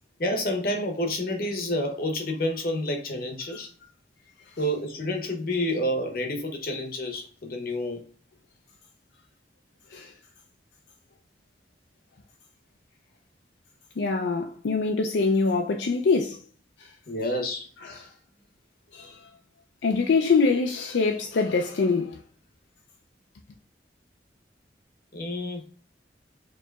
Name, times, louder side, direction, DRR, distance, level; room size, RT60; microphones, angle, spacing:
voice 1, 0.2-3.7 4.6-8.0 17.1-17.7 25.1-25.6, left 1 dB, 55° left, 0.8 m, -29 dB
voice 2, 14.0-16.4 17.8-18.1 18.9-19.2 19.8-22.2, left 4 dB, 80° left, 0.4 m, -24 dB
4.5 x 2.9 x 2.3 m
head